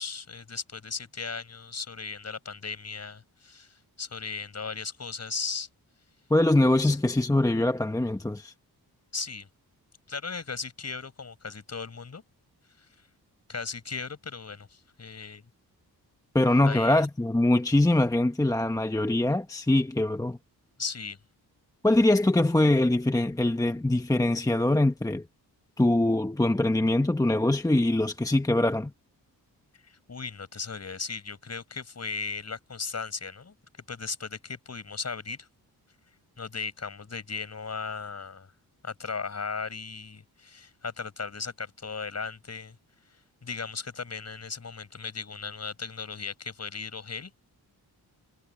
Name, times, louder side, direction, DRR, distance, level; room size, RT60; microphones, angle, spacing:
voice 1, 0.0-5.7 6.8-7.0 9.1-9.5 10.1-12.2 13.5-15.4 16.6-17.0 20.8-21.2 29.8-33.5 33.9-35.5 36.4-38.5 38.8-42.8 43.1-47.3, left 5 dB, 40° left, 7.9 m, -37 dB
voice 2, 6.3-8.5 16.3-20.4 21.8-25.3 25.8-28.9, left 1 dB, 10° left, 1.0 m, -23 dB
cardioid pair, 95°, 38 cm